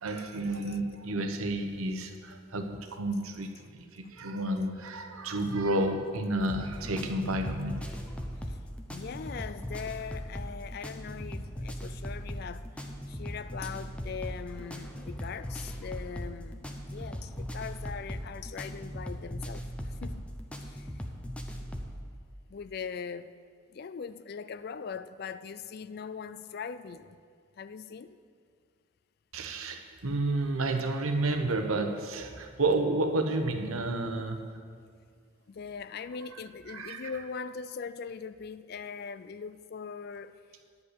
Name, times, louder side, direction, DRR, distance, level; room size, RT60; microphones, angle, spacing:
voice 1, 0.0-7.8 29.3-34.4 36.7-37.1, right 2 dB, 85° right, 5 dB, 1.0 m, -31 dB
sound 1, 6.5-22.0, equal, 5° left, 0.7 m, -39 dB
voice 2, 8.9-19.6 20.0-20.3 20.7-20.9 22.5-23.3 23.7-27.2 27.6-28.2 35.5-40.3, left 6 dB, 45° left, 14 dB, 0.3 m, -41 dB
10.5 x 5.3 x 8.1 m, 2.1 s
head